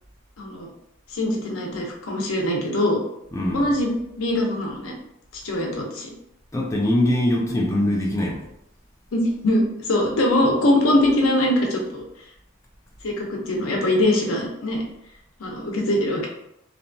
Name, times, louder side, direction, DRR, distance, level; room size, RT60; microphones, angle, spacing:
voice 1, 0.4-0.7 1.1-3.0 3.5-4.9 5.4-6.1 9.1-12.0 13.0-14.8 15.4-16.3, left 1 dB, 85° left, 0 dB, 0.6 m, -22 dB
voice 2, 3.3-3.7 6.5-8.5, left 1 dB, 15° left, -2 dB, 0.3 m, -22 dB
2.8 x 2.2 x 2.6 m, 0.79 s
head